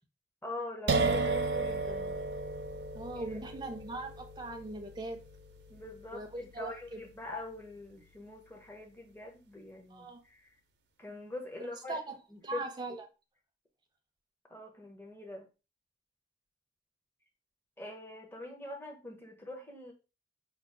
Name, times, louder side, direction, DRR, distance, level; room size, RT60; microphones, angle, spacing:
voice 1, 0.4-2.2 3.1-3.4 5.7-10.5 11.0-12.0 12.3-12.6 14.5-15.5 17.8-19.9, left 2 dB, 15° left, 0.7 m, -44 dB
sound 1, 0.9-8.4, right 3 dB, 80° right, 0.4 m, -35 dB
voice 2, 2.9-5.2 6.1-7.0 9.9-10.2 11.6-12.2 12.4-13.0, right 2 dB, 25° right, 0.5 m, -40 dB
4.5 x 2.3 x 2.5 m
head